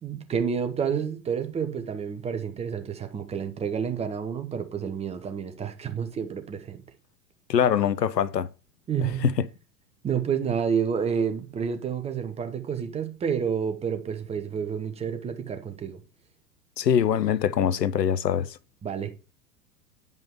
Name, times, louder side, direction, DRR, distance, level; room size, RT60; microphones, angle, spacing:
voice 1, 0.0-6.8 8.9-9.3 10.0-16.0 18.8-19.1, right 7 dB, 15° right, 0.8 m, -29 dB
voice 2, 7.5-8.5 9.0-9.5 16.8-18.6, left 8 dB, 85° left, 0.5 m, -23 dB
9.0 x 5.3 x 3.6 m
figure-of-eight pair, 95°, 48 cm